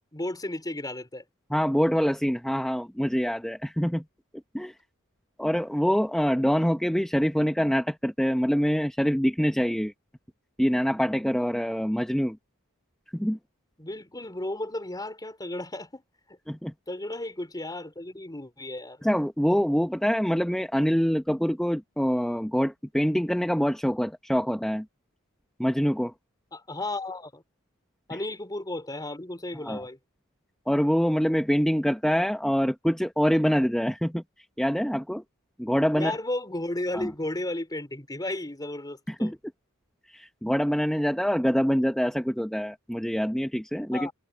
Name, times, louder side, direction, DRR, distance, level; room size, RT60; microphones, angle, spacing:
voice 1, 0.1-1.2 13.8-16.0 16.9-19.1 26.5-27.4 28.1-30.0 36.0-39.3 43.9-44.1, left 1 dB, 20° left, 4.4 m, -34 dB
voice 2, 1.5-4.0 4.5-4.7 5.4-9.9 10.6-12.4 13.1-13.4 16.5-16.7 19.0-24.9 25.6-26.1 29.5-29.8 30.7-34.2 34.6-35.2 35.6-36.1 36.9-37.1 39.1-39.4 40.1-44.1, equal, ahead, 1.0 m, -25 dB
head